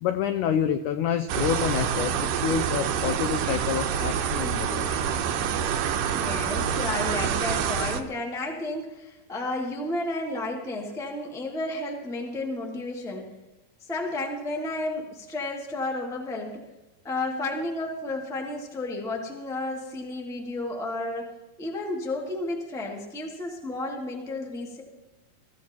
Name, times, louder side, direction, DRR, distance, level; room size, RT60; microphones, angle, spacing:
voice 1, 0.0-5.0, left 8 dB, 85° left, 8 dB, 1.7 m, -28 dB
sound 1, 1.3-8.0, right 8 dB, 75° right, 2.4 m, -27 dB
voice 2, 6.1-13.3 13.8-16.6 17.0-21.3 21.6-24.8, left 2 dB, ahead, -1 dB, 1.1 m, -32 dB
22.0 x 14.5 x 3.0 m, 1.0 s
omnidirectional pair, 4.3 m